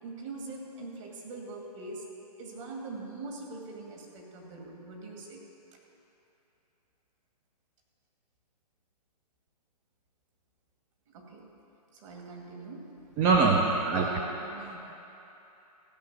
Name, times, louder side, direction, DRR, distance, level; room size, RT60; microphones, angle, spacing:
voice 1, 0.0-2.1 2.4-5.4 11.1-11.6 11.9-13.0 13.8-14.9, right 3 dB, 50° right, 0 dB, 2.4 m, -43 dB
voice 2, 13.2-14.1, right 4 dB, 15° right, 1 dB, 0.5 m, -23 dB
15.5 x 5.7 x 7.5 m, 3.0 s
hypercardioid pair, 145°, 21 cm